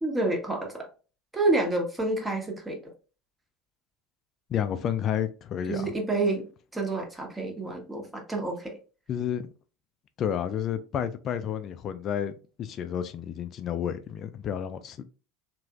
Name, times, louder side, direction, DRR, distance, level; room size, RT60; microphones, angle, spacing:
voice 1, 0.0-0.9 1.3-2.8 5.7-6.4 6.7-8.7, right 2 dB, 15° right, 1.2 m, -28 dB
voice 2, 4.5-5.9 9.1-9.5 10.2-12.3 12.6-15.0, left 9 dB, 45° left, 0.3 m, -30 dB
3.1 x 2.9 x 2.4 m
figure-of-eight pair, 70°, 0 cm